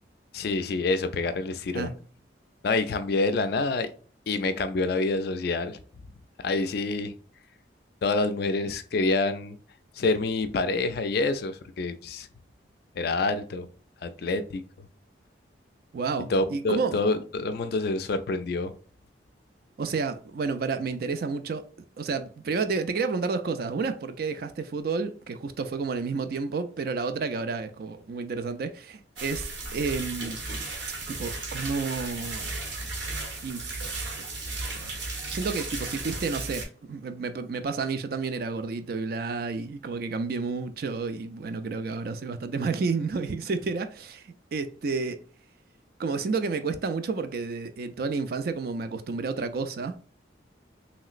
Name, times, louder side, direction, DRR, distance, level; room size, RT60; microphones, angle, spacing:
voice 1, 0.3-1.9 2.6-3.9 4.3-5.8 6.4-7.1 8.0-9.6 10.0-12.3 13.0-13.7 14.0-14.6 16.3-18.7, left 3 dB, 55° left, 0.3 m, -27 dB
voice 2, 15.9-17.0 19.8-21.6 22.0-30.4 31.1-32.5 33.4-34.0 34.7-34.9 35.3-45.2 46.0-50.0, right 4 dB, 50° right, 0.3 m, -30 dB
sound 1, 29.2-36.6, right 3 dB, 75° right, 1.0 m, -35 dB
3.1 x 2.9 x 2.4 m
head